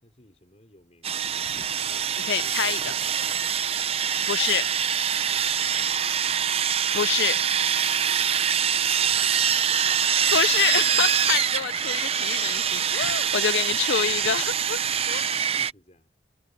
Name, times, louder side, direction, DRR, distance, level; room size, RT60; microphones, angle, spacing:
voice 1, 0.0-3.6 5.3-6.0 8.7-9.6 14.9-16.1, left 1 dB, 35° left, 5.4 m, -57 dB
Sawing, 1.0-15.7, right 8 dB, 30° right, 0.6 m, -24 dB
voice 2, 2.2-2.8 4.3-4.6 6.9-7.4 10.3-14.8 15.1-15.3, left 8 dB, 65° left, 0.5 m, -26 dB
head